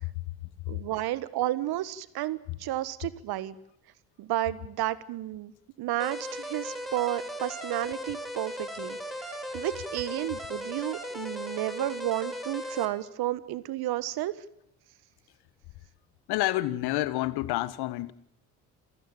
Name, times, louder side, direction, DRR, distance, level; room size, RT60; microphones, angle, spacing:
voice 1, 0.0-0.7 2.5-2.6 16.3-18.1, left 17 dB, 70° left, 1.6 m, -30 dB
voice 2, 0.7-3.6 4.2-5.5 5.8-9.0 9.5-14.3, right 15 dB, 65° right, 1.6 m, -32 dB
sound 1, 6.0-12.9, equal, ahead, 5.8 m, -37 dB
28.5 x 16.0 x 9.0 m
hypercardioid pair, 55°, 41 cm